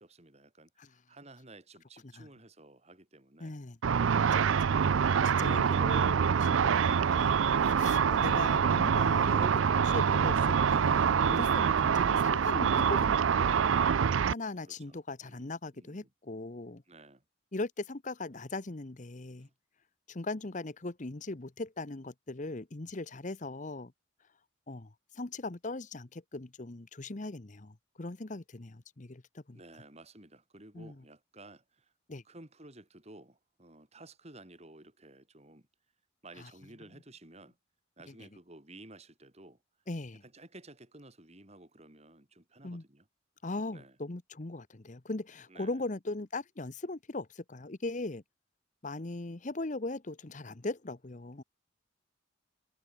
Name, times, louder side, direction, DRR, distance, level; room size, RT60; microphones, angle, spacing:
voice 1, 0.0-3.6 4.3-4.7 14.6-16.1 16.9-17.2 19.4-19.5 29.5-31.9 32.2-35.7 36.2-37.6 38.0-39.6 40.2-43.1 43.7-44.0 45.5-45.8, right 2 dB, 30° right, 3.5 m, -54 dB
voice 2, 3.4-3.8 5.2-7.4 7.6-13.6 14.3-16.8 17.5-19.5 20.1-23.9 24.7-29.6 30.7-30.9 32.1-32.2 36.4-36.5 39.9-40.2 42.6-42.8 43.4-48.2 48.8-51.4, left 2 dB, 40° left, 1.0 m, -39 dB
Car / Traffic noise roadway noise / Engine, 3.8-14.3, right 7 dB, 80° right, 0.4 m, -25 dB
head